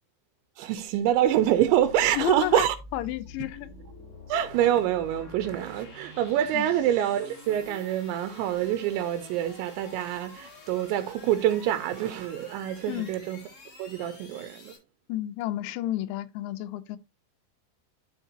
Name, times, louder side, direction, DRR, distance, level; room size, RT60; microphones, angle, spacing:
voice 1, 0.6-2.8 4.3-13.4 13.8-14.7, right 11 dB, 85° right, 3.0 m, -26 dB
sound 1, 0.8-14.8, left 2 dB, 35° left, 3.4 m, -48 dB
voice 2, 2.1-2.6 2.9-3.7 6.5-6.7 12.9-13.1 15.1-17.0, left 15 dB, 85° left, 3.0 m, -31 dB
12.0 x 4.5 x 2.9 m
omnidirectional pair, 5.3 m